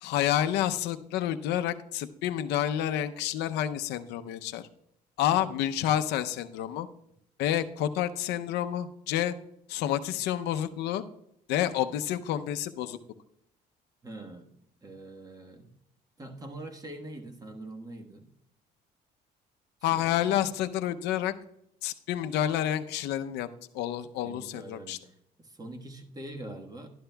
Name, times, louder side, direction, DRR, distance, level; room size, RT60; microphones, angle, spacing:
voice 1, 0.0-4.7 5.2-6.9 7.4-9.3 9.7-11.0 11.5-13.0 19.8-21.3 21.8-23.5 23.7-25.0, left 11 dB, 85° left, 10 dB, 0.6 m, -29 dB
voice 2, 14.0-14.5 14.8-15.7 16.2-18.3 19.9-20.4 24.2-26.9, right 1 dB, 20° right, 4 dB, 1.4 m, -44 dB
12.0 x 11.5 x 2.3 m, 0.76 s
cardioid pair, 110°, 17 cm